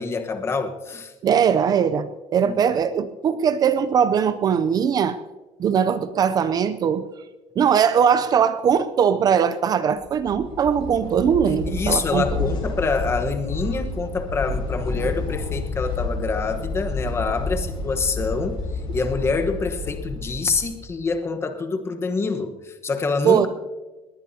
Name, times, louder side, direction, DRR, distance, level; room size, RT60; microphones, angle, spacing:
voice 1, 0.0-1.1 2.4-2.6 11.5-18.6 18.9-23.5, left 4 dB, 20° left, 6 dB, 1.1 m, -26 dB
voice 2, 1.2-5.2 5.6-7.1 7.6-12.2 23.2-23.5, right 7 dB, 30° right, 13 dB, 0.5 m, -20 dB
sound 1, 10.0-21.0, left 3 dB, 45° left, 5.7 m, -30 dB
20.5 x 19.0 x 2.8 m, 1.2 s
cardioid pair, 165°, 12 cm